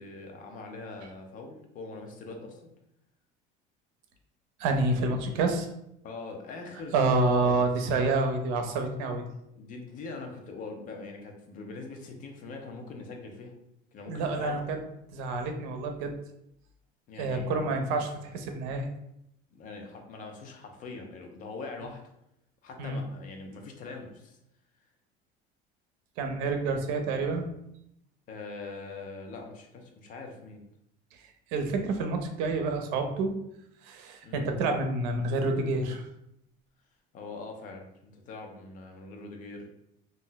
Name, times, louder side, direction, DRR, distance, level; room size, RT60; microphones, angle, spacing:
voice 1, 0.0-2.6 6.0-7.6 9.6-13.5 13.9-14.6 17.1-17.6 19.5-22.1 22.6-24.4 26.4-26.5 28.3-30.6 34.2-34.5 37.1-39.7, left 3 dB, 40° left, 3 dB, 0.6 m, -42 dB
voice 2, 4.6-5.7 6.9-9.2 14.1-14.8 15.1-16.1 17.2-18.9 22.8-23.0 26.2-27.5 31.5-33.3 33.8-36.1, right 3 dB, 85° right, 5 dB, 0.6 m, -28 dB
2.5 x 2.1 x 3.8 m, 0.80 s
cardioid pair, 145°, 20 cm